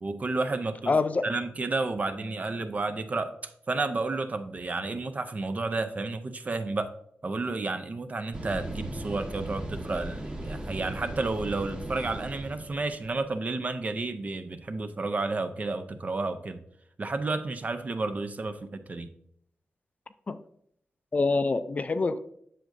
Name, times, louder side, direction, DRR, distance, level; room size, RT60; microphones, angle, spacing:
voice 1, 0.0-0.9 1.2-6.9 7.2-16.6 17.0-19.1, right 3 dB, 40° right, 9 dB, 0.6 m, -31 dB
voice 2, 0.9-1.2 20.3-20.4 21.1-22.2, left 3 dB, 40° left, 11 dB, 0.4 m, -25 dB
sound 1, 8.3-13.3, right 1 dB, 25° right, 1.2 m, -37 dB
7.6 x 6.4 x 2.6 m, 0.70 s
wide cardioid pair, 90°, 4 cm